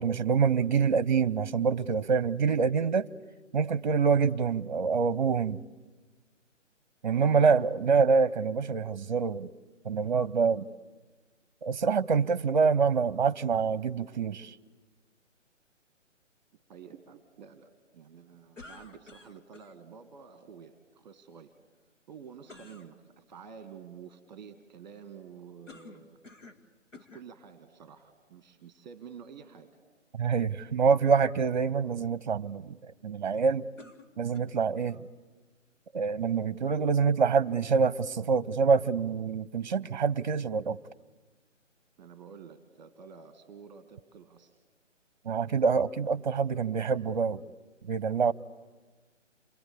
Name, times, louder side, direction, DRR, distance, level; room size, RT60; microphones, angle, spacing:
voice 1, 0.0-3.1 3.5-5.6 7.0-9.5 9.8-10.7 11.6-14.5 30.1-33.7 34.2-35.0 35.9-40.8 45.2-47.4 47.8-48.3, right 5 dB, 40° right, 0.8 m, -26 dB
voice 2, 7.1-7.6 16.7-21.5 22.1-26.2 26.9-29.7 34.9-35.0 42.0-44.6, right 6 dB, 15° right, 1.5 m, -49 dB
sound 1, 18.6-19.7 22.5-22.9 25.7-26.7 26.9-27.3 28.1-28.2 33.8-34.7, left 3 dB, 75° left, 2.7 m, -51 dB
28.0 x 22.0 x 8.4 m
figure-of-eight pair, 145°, 38 cm